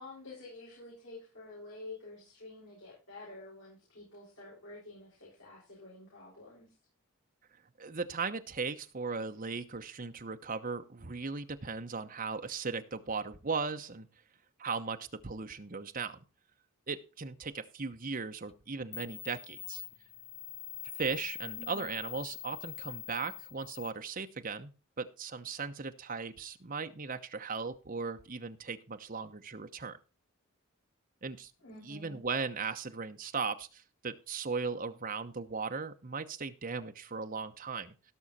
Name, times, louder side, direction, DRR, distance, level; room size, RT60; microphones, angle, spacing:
voice 1, 0.0-6.7 21.6-22.0 31.6-32.2, left 2 dB, 80° left, -7 dB, 7.7 m, -49 dB
voice 2, 7.8-14.1 14.6-16.2 16.9-19.8 21.0-24.7 25.0-30.0 31.2-31.5 31.8-37.9, right 4 dB, 40° right, 7 dB, 1.0 m, -37 dB
sound 1, 18.5-18.6 18.9-23.9, left 11 dB, 30° left, 0.5 m, -44 dB
17.0 x 6.4 x 4.2 m, 0.32 s
head